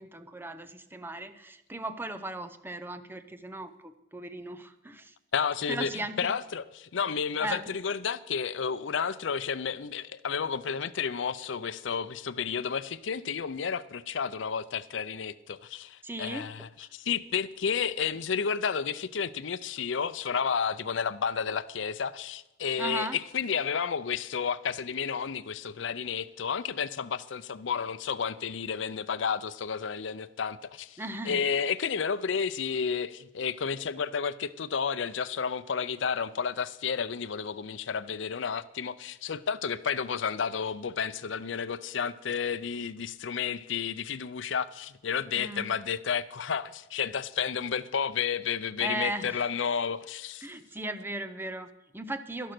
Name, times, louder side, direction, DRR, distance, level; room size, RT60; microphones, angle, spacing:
voice 1, 0.0-5.1 5.7-6.3 7.4-7.7 16.0-16.9 22.8-23.2 31.0-31.4 45.3-45.7 48.8-49.4 50.4-52.5, right 1 dB, 10° right, 0.7 m, -37 dB
voice 2, 5.3-5.9 6.2-31.0 31.3-50.5, left 6 dB, 75° left, 0.6 m, -31 dB
12.0 x 11.5 x 6.0 m
head